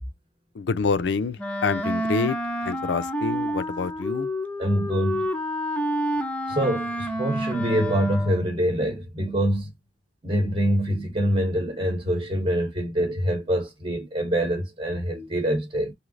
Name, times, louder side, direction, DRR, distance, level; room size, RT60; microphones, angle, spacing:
voice 1, 0.5-4.3, left 4 dB, 75° left, 0.4 m, -27 dB
Wind instrument woodwind instrument, 1.4-8.5, equal, 10° left, 0.5 m, -29 dB
voice 2, 4.6-5.3 6.5-9.7 10.2-15.9, equal, 30° right, 0.9 m, -25 dB
3.1 x 2.7 x 2.5 m
head